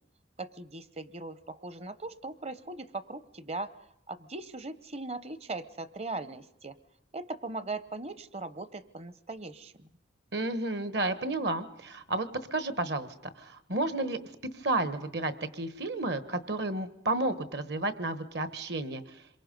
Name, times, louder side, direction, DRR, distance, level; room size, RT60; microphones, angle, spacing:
voice 1, 0.4-6.7 7.1-9.9, right 3 dB, 35° right, 14 dB, 0.8 m, -39 dB
voice 2, 10.3-14.2 14.5-19.2, right 2 dB, 60° right, 12 dB, 1.3 m, -32 dB
27.0 x 23.0 x 5.3 m, 0.82 s
head